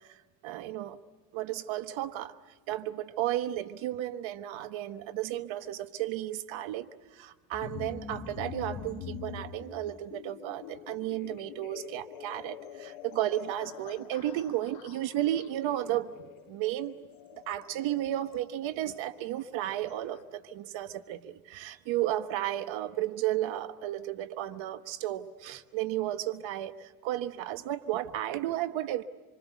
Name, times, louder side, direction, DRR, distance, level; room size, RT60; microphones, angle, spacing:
voice 1, 0.4-1.0 1.3-2.3 2.7-17.0 17.3-29.0, right 13 dB, 85° right, 12 dB, 1.2 m, -33 dB
sound 1, 7.5-20.2, left 8 dB, 90° left, 2.4 m, -45 dB
26.0 x 25.0 x 8.2 m, 1.2 s
supercardioid pair, 60°, 45 cm